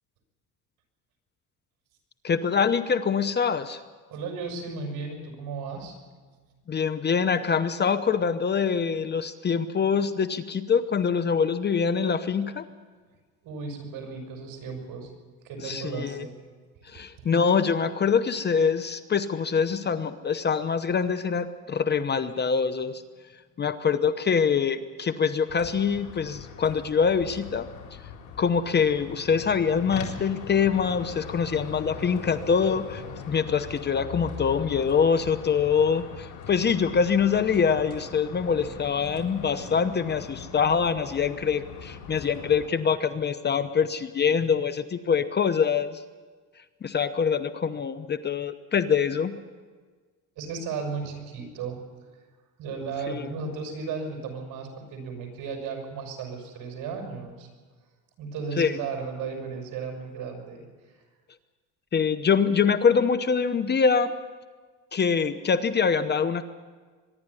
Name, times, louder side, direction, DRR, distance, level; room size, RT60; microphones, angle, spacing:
voice 1, 2.2-3.8 6.7-12.6 15.6-16.2 16.9-23.0 23.6-27.7 28.4-46.0 46.8-49.4 53.1-53.3 58.6-58.8 61.9-64.1 64.9-66.4, left 6 dB, 30° left, 12 dB, 0.9 m, -24 dB
voice 2, 4.1-6.0 6.4-6.5 13.4-15.1 15.4-16.3 16.9-17.0 50.4-51.8 52.6-57.5 58.2-61.0, right 5 dB, 65° right, 3 dB, 6.3 m, -35 dB
sound 1, 25.5-42.7, left 6 dB, 85° left, 4.1 m, -41 dB
24.0 x 11.0 x 9.7 m, 1.4 s
cardioid pair, 115°, 35 cm